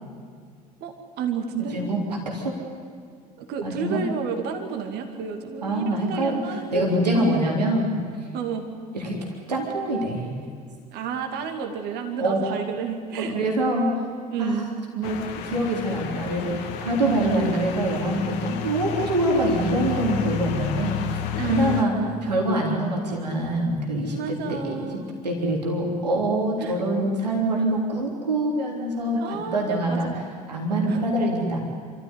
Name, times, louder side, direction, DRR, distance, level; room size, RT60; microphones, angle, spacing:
voice 1, 0.8-1.8 3.4-6.9 7.1-7.4 8.3-8.7 10.9-13.4 14.3-14.7 17.0-17.5 21.4-22.3 22.7-22.8 24.1-25.1 26.6-26.8 29.2-30.2 30.9-31.0, right 7 dB, 50° right, 5 dB, 2.4 m, -30 dB
voice 2, 1.6-2.5 3.6-4.0 5.6-8.0 8.9-9.2 9.5-10.4 12.2-12.4 13.2-13.9 14.4-21.2 21.5-21.9 22.2-24.1 24.5-24.9 25.2-30.2 30.5-31.6, right 1 dB, 80° right, -1 dB, 3.5 m, -25 dB
sound 1, 15.0-21.8, left 8 dB, 55° left, 1.8 m, -31 dB
27.5 x 14.0 x 9.8 m, 2.1 s
figure-of-eight pair, 60°, 21 cm